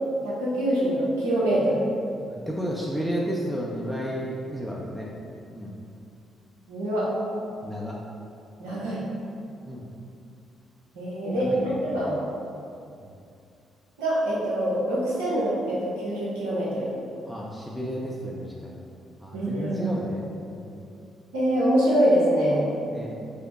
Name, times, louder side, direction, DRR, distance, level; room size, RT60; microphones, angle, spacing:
voice 1, 0.2-1.8 6.7-7.1 8.6-9.0 10.9-12.2 14.0-16.9 19.3-19.8 21.3-22.7, right 1 dB, 85° right, -7 dB, 1.0 m, -24 dB
voice 2, 2.3-5.1 5.5-5.8 7.6-8.0 9.7-9.9 11.3-12.0 13.0-13.1 17.3-18.9 19.2-20.2 20.5-20.9 22.9-23.1, equal, ahead, -4 dB, 0.6 m, -32 dB
5.1 x 2.1 x 4.0 m, 2.5 s
hypercardioid pair, 45°, 0 cm